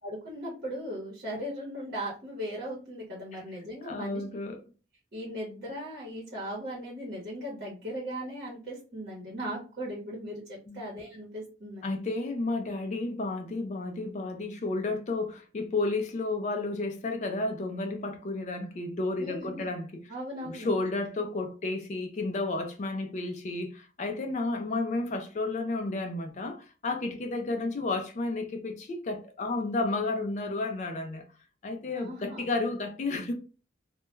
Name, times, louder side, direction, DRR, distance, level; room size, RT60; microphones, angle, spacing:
voice 1, 0.0-4.2 5.1-11.8 19.2-19.8 20.1-20.7 31.9-32.5, equal, 50° right, 0.9 m, -38 dB
voice 2, 3.8-4.6 10.7-10.8 11.8-20.0 20.4-31.2 31.6-33.3, left 2 dB, 40° left, 0.3 m, -32 dB
2.2 x 2.1 x 2.9 m
head